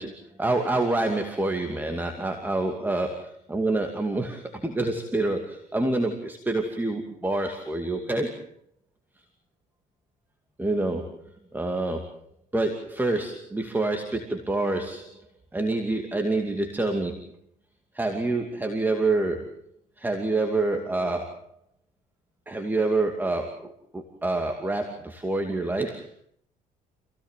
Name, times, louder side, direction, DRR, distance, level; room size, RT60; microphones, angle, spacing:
voice 1, 0.0-8.4 10.6-12.2 12.5-15.1 15.5-17.3 17.9-19.5 20.0-21.4 22.5-26.1, right 2 dB, 10° right, 3 dB, 2.5 m, -27 dB
27.5 x 17.5 x 7.5 m, 0.66 s
cardioid pair, 110°, 17 cm